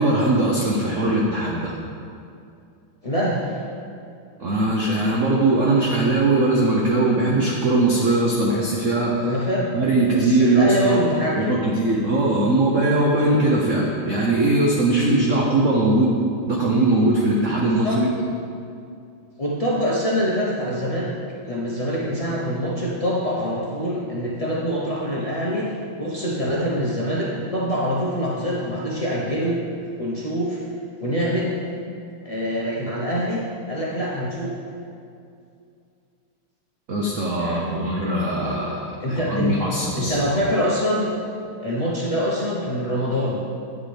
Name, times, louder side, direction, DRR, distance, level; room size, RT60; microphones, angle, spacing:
voice 1, 0.0-1.7 4.4-9.4 9.7-11.0 11.4-16.2 16.5-18.1 36.9-40.3, right 2 dB, 55° right, -3 dB, 0.9 m, -20 dB
voice 2, 3.0-3.6 9.2-9.7 10.1-11.5 17.6-18.0 19.4-21.1 21.4-29.6 30.0-30.6 31.0-31.5 32.2-33.4 33.7-34.5 37.4-38.1 39.0-39.5 40.0-41.1 41.6-43.4, equal, 65° left, -7 dB, 0.3 m, -25 dB
9.7 x 8.4 x 3.4 m, 2.5 s
omnidirectional pair, 2.3 m